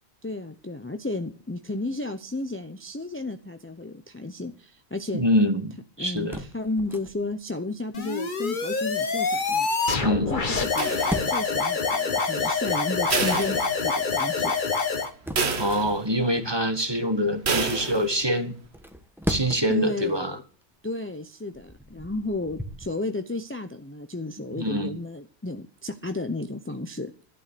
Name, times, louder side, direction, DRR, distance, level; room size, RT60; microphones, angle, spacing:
voice 1, 0.2-5.2 6.0-9.7 10.3-14.5 19.7-20.4 20.8-27.1, left 2 dB, 15° left, 7 dB, 0.7 m, -33 dB
voice 2, 5.1-6.4 9.9-10.3 15.6-18.5 19.3-20.4 24.6-24.9, equal, 25° right, 8 dB, 1.5 m, -25 dB
sound 1, 6.1-7.4 10.3-11.6 14.5-16.3 18.6-19.9 20.4-20.6 21.3-22.9, equal, ahead, 1.2 m, -36 dB
sound 2, 7.9-15.1, left 4 dB, 50° left, 1.4 m, -26 dB
sound 3, 10.8-11.6 13.1-14.2 14.6-14.7 15.4-16.2 17.4-18.2, right 4 dB, 70° right, 1.6 m, -29 dB
12.5 x 11.5 x 6.8 m, 0.42 s
omnidirectional pair, 1.1 m